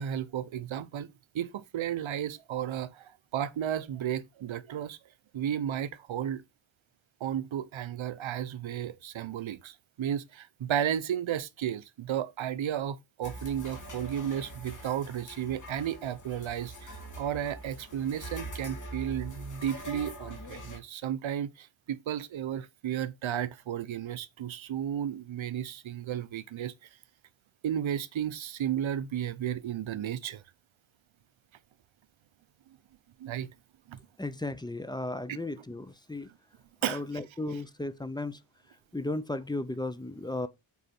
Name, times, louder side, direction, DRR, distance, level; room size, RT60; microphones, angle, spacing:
voice 1, 0.0-5.0 5.3-6.4 7.2-26.7 27.6-30.4 33.2-33.5 33.9-34.0 35.3-35.4 36.8-37.0, right 10 dB, 75° right, 0.7 m, -33 dB
sound 1, 13.2-20.8, right 1 dB, 40° left, 2.9 m, -43 dB
voice 2, 34.2-36.3 36.8-38.4 38.9-40.5, left 2 dB, 10° left, 0.5 m, -35 dB
8.2 x 4.8 x 4.3 m
wide cardioid pair, 170°, 48 cm